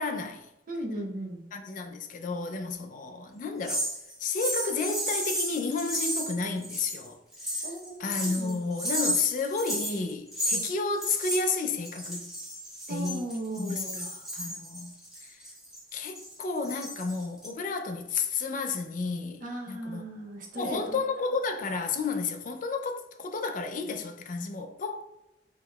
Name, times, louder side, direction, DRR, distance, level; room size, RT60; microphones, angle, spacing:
voice 1, 0.0-0.5 1.5-3.9 4.2-7.2 8.0-12.3 12.9-13.3 13.6-15.4 15.9-20.1 20.5-25.0, left 4 dB, 50° left, 0.4 m, -32 dB
voice 2, 0.7-1.4 7.6-8.9 12.9-14.0 19.4-20.9, right 1 dB, 50° right, 0.8 m, -37 dB
sound 1, 3.6-7.1 7.3-10.7 11.0-17.5, equal, 5° right, 1.1 m, -33 dB
4.5 x 2.9 x 2.3 m
head